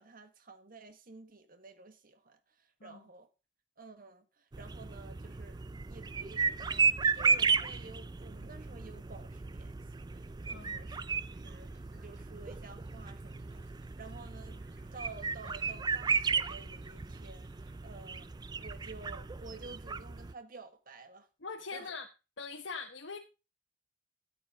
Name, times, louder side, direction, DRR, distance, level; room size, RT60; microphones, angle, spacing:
voice 1, 0.0-3.3 3.8-11.0 11.3-13.6 14.0-14.6 14.9-18.3 18.6-21.3 21.7-21.9, right 3 dB, 50° right, 1.6 m, -52 dB
sound 1, 4.5-20.3, right 5 dB, 25° right, 0.4 m, -34 dB
voice 2, 10.5-10.9 21.4-22.1 22.4-23.2, left 4 dB, 90° left, 1.1 m, -42 dB
sound 2, 11.4-17.8, right 2 dB, 70° right, 6.5 m, -67 dB
13.0 x 8.6 x 3.6 m
head